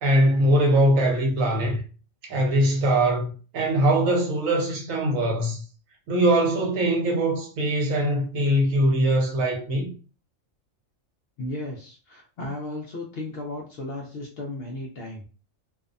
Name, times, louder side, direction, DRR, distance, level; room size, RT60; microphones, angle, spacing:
voice 1, 0.0-1.8 2.3-5.6 6.1-9.9, right 1 dB, 75° right, 1.1 m, -22 dB
voice 2, 11.4-15.3, left 1 dB, 65° left, 0.6 m, -35 dB
2.6 x 2.1 x 2.4 m
omnidirectional pair, 1.4 m